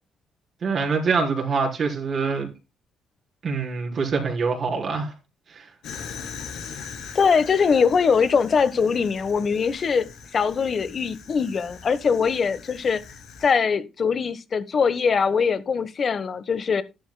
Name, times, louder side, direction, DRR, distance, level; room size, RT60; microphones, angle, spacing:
voice 1, 0.6-2.5 3.4-5.1 5.5-5.7, right 5 dB, 50° right, 4.0 m, -25 dB
Fire, 5.8-13.5, left 6 dB, 80° left, 3.1 m, -41 dB
voice 2, 7.1-13.0 13.4-16.8, left 5 dB, 45° left, 1.2 m, -22 dB
12.0 x 11.5 x 2.2 m
cardioid pair, 90°, 0 cm